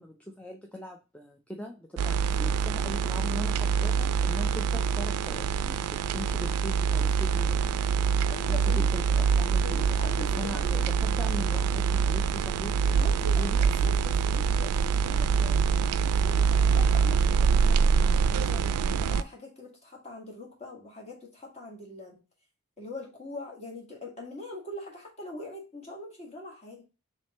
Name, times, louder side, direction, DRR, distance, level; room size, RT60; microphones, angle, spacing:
voice 1, 0.0-7.6 8.5-9.8 10.2-13.6, left 1 dB, 5° left, 2 dB, 0.3 m, -40 dB
sound 1, 2.0-19.2, right 6 dB, 90° right, 0.3 m, -25 dB
voice 2, 8.3-8.9 9.6-10.8 12.9-22.2 22.8-26.8, left 2 dB, 30° left, -1 dB, 1.5 m, -43 dB
3.4 x 3.1 x 4.1 m, 0.31 s
head